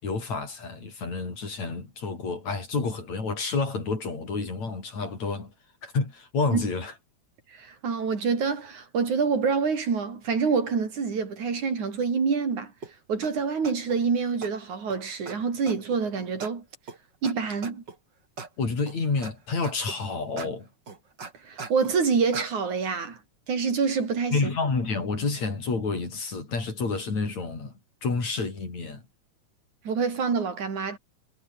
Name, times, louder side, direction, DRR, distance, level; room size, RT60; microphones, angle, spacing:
voice 1, 0.0-5.5 5.8-6.9 18.6-20.7 24.3-27.7 28.0-29.0, left 4 dB, 70° left, 7.2 m, -29 dB
voice 2, 7.5-12.7 13.1-16.6 17.2-17.8 21.4-23.2 23.5-24.5 29.8-31.0, right 5 dB, 85° right, 5.8 m, -26 dB
sound 1, 12.8-12.9 13.2-13.3 13.6-14.0 14.4-14.5 14.9-15.0 15.3-15.4 15.7-16.0 16.4-16.5 16.9-17.0 17.2-17.3 17.6-18.0 18.4-18.5 18.9-19.3 19.6-20.0 20.4-20.5 20.9-22.0 22.3-22.5, right 4 dB, 35° right, 3.7 m, -39 dB
omnidirectional pair, 3.3 m